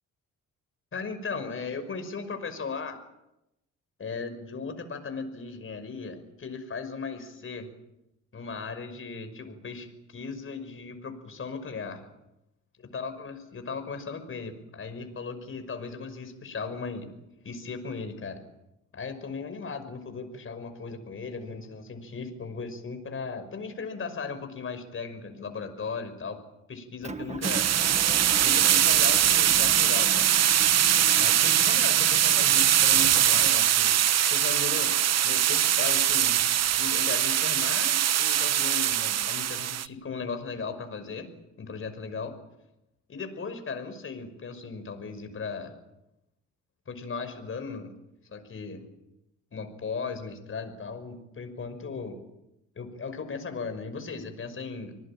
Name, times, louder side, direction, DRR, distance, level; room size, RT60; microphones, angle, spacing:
voice 1, 0.9-3.0 4.0-7.7 8.3-12.0 12.9-17.1 17.4-18.4 18.9-26.4 26.7-27.7 28.4-30.3 31.1-34.0 34.3-36.4 36.8-41.3 41.6-42.4 43.1-45.7 46.9-47.9 48.3-48.8 49.5-52.2 52.7-55.0, left 4 dB, 45° left, 8 dB, 5.7 m, -37 dB
Motor vehicle (road) / Engine, 27.0-33.5, right 4 dB, 20° right, 1.5 m, -39 dB
sound 1, 27.4-39.9, right 11 dB, 60° right, 1.0 m, -22 dB
26.0 x 19.5 x 8.9 m, 0.89 s
cardioid pair, 90°, 30 cm